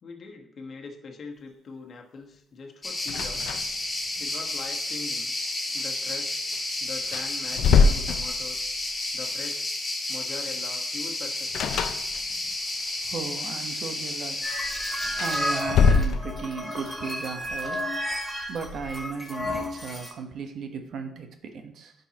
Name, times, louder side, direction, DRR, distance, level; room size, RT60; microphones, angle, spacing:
voice 1, 0.0-3.5 4.2-5.3 5.7-6.4 6.8-8.7 9.1-9.7 10.1-11.8, left 4 dB, 50° left, 1.2 m, -42 dB
sound 1, 2.8-15.6, left 2 dB, 20° left, 2.3 m, -31 dB
sound 2, 3.1-3.9 4.2-4.3 6.5-6.6 7.0-8.8 11.5-12.5 15.0-16.7, left 5 dB, 75° left, 0.4 m, -23 dB
voice 2, 13.0-14.5 15.2-17.8 18.5-21.9, right 5 dB, 65° right, 1.0 m, -36 dB
sound 3, 14.4-20.1, left 1 dB, ahead, 2.4 m, -32 dB
10.0 x 5.4 x 2.9 m
cardioid pair, 90°, 0 cm